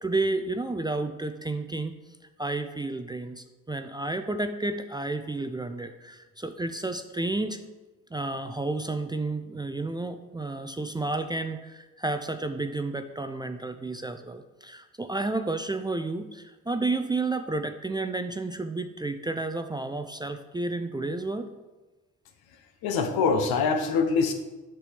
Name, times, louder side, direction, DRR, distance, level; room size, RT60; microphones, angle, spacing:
voice 1, 0.0-2.0 2.4-7.6 8.1-21.5, right 2 dB, 10° right, 7 dB, 0.4 m, -31 dB
voice 2, 22.8-24.3, left 5 dB, 70° left, 6 dB, 1.0 m, -24 dB
7.2 x 6.0 x 3.4 m, 1.1 s
hypercardioid pair, 60°, 38 cm